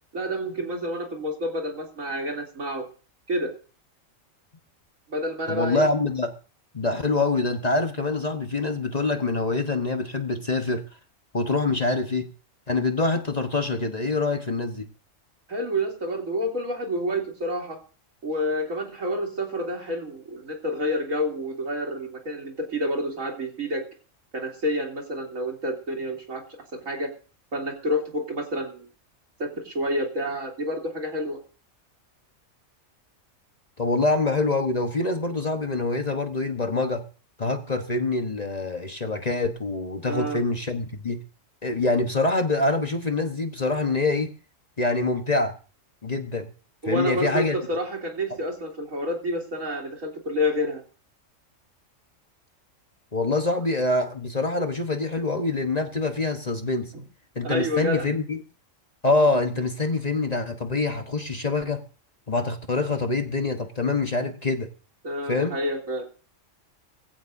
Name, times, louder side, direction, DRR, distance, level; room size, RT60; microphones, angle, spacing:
voice 1, 0.1-2.9 3.3-3.5 5.1-5.9 15.5-17.8 18.2-23.8 24.3-26.4 26.9-27.1 27.5-28.9 29.4-31.4 40.1-40.4 46.8-50.8 56.9-57.0 57.4-58.1 65.0-66.1, equal, 80° right, 3.6 m, -29 dB
voice 2, 5.5-6.3 6.7-10.8 11.3-12.3 12.7-14.9 33.8-37.0 37.4-41.2 41.6-44.3 44.8-45.5 46.0-46.5 46.8-47.6 53.1-56.9 57.3-58.4 59.0-61.8 62.3-64.7 65.3-65.6, left 3 dB, 30° left, 1.2 m, -25 dB
21.0 x 15.5 x 2.7 m
omnidirectional pair, 1.4 m